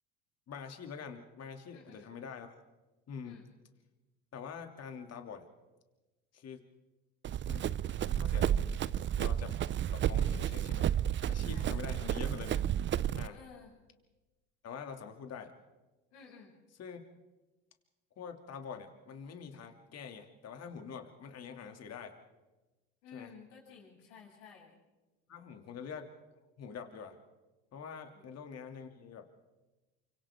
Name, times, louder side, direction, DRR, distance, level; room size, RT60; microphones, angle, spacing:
voice 1, 0.5-2.6 3.1-3.4 4.3-5.5 6.3-6.6 7.4-7.7 8.1-8.7 9.2-9.6 9.9-10.9 11.3-12.5 13.1-13.4 14.6-15.5 16.8-17.0 18.2-22.1 23.1-23.3 25.3-26.1 26.6-27.2 27.7-29.3, left 6 dB, 45° left, 4 dB, 2.8 m, -45 dB
voice 2, 1.7-2.1 3.2-3.5 11.5-12.0 13.3-13.7 16.1-16.5 23.0-24.8 28.1-28.3, left 6 dB, 80° left, -3 dB, 7.9 m, -54 dB
Run, 7.2-13.3, right 10 dB, 35° right, 0.6 m, -31 dB
29.0 x 25.0 x 3.7 m, 1.1 s
hypercardioid pair, 75°, 35 cm